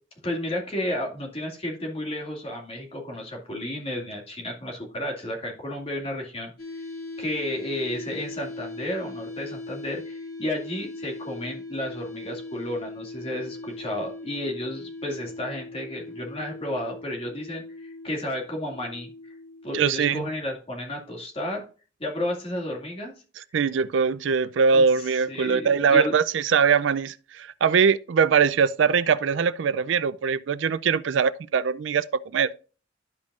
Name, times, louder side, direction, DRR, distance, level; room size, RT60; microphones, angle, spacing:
voice 1, 0.2-6.5 7.2-19.3 19.6-21.6 22.0-23.1 24.7-24.8 25.3-26.2, left 1 dB, 30° left, 2.2 m, -32 dB
sound 1, 6.6-20.5, left 2 dB, 60° left, 2.5 m, -40 dB
voice 2, 19.7-20.3 23.4-32.5, right 6 dB, 80° right, 0.4 m, -22 dB
12.0 x 5.3 x 2.4 m
head